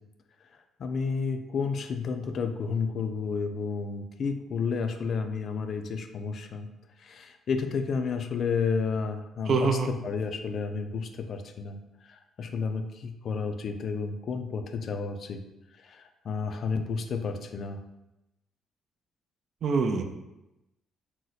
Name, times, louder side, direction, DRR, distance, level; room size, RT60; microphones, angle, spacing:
voice 1, 0.8-6.7 7.0-11.8 12.1-15.4 15.8-17.8, left 5 dB, 55° left, 7 dB, 0.3 m, -31 dB
voice 2, 9.5-9.9 19.6-20.0, right 4 dB, 60° right, 6 dB, 0.4 m, -24 dB
2.7 x 2.1 x 3.9 m, 0.94 s
cardioid pair, 85°, 0 cm